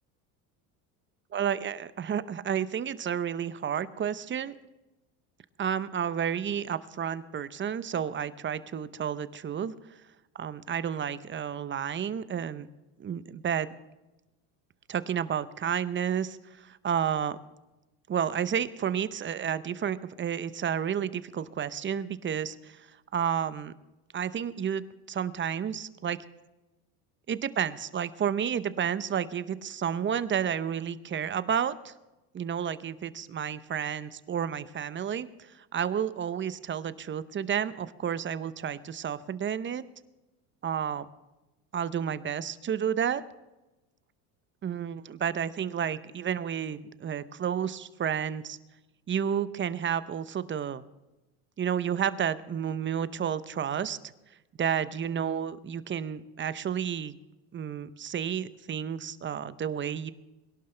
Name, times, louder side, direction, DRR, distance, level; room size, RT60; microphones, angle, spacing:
voice 1, 1.3-4.5 5.6-9.7 10.4-12.7 13.0-13.7 14.9-17.4 18.1-22.9 23.1-23.7 24.1-26.2 27.3-31.9 32.3-39.8 40.6-41.1 41.7-43.2 44.6-48.6 49.1-50.8 51.6-54.0 54.6-57.1 57.5-60.1, right 8 dB, 30° right, 15 dB, 0.7 m, -31 dB
22.0 x 11.5 x 3.3 m, 1.0 s
supercardioid pair, 110°, 42 cm